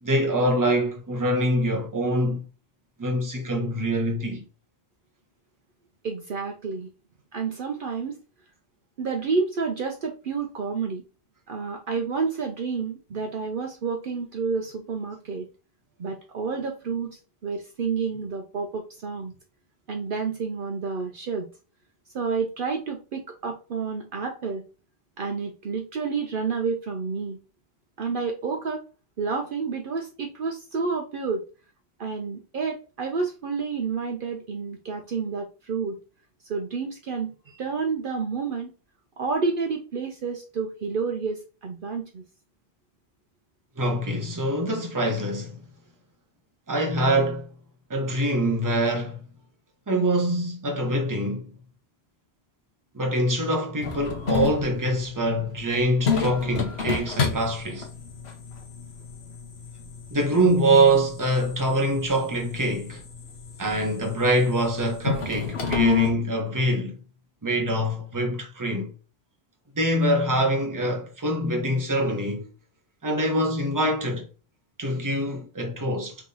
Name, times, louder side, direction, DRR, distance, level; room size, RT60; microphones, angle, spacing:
voice 1, 0.0-2.4 3.0-4.4 43.8-45.6 46.7-47.5 47.9-49.2 49.9-51.5 52.9-57.9 60.1-63.0 63.6-67.0 67.4-68.9 69.7-72.5 73.0-74.2 74.8-76.2, right 1 dB, 20° right, 0.9 m, -24 dB
voice 2, 6.0-6.9 7.3-8.2 9.0-11.0 11.5-15.5 16.0-17.1 17.4-19.3 19.9-21.5 22.1-24.6 25.2-27.4 28.0-28.8 29.2-31.4 32.0-36.0 36.4-38.7 39.2-42.2, right 5 dB, 60° right, 0.8 m, -29 dB
sound 1, 53.8-66.1, left 6 dB, 85° left, 1.2 m, -31 dB
3.6 x 3.0 x 3.9 m
omnidirectional pair, 1.1 m